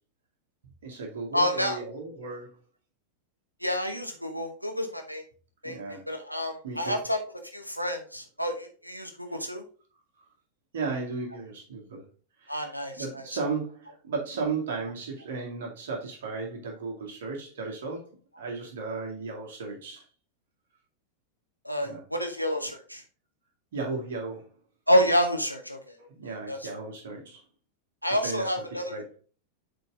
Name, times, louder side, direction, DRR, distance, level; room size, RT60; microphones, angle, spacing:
voice 1, 0.8-2.5 5.6-6.0 6.6-7.0 10.7-12.0 12.4-20.0 21.8-22.0 23.7-24.5 26.0-27.4 28.2-28.6 28.9-29.0, right 4 dB, 60° right, -1 dB, 2.4 m, -35 dB
voice 2, 1.3-1.8 3.6-5.2 5.6-7.2 7.5-9.6 12.5-13.2 21.6-23.0 24.9-25.8 26.5-26.6 28.0-29.0, equal, 90° left, 4 dB, 1.1 m, -28 dB
6.8 x 4.3 x 3.9 m, 0.39 s
figure-of-eight pair, 90°, 0 cm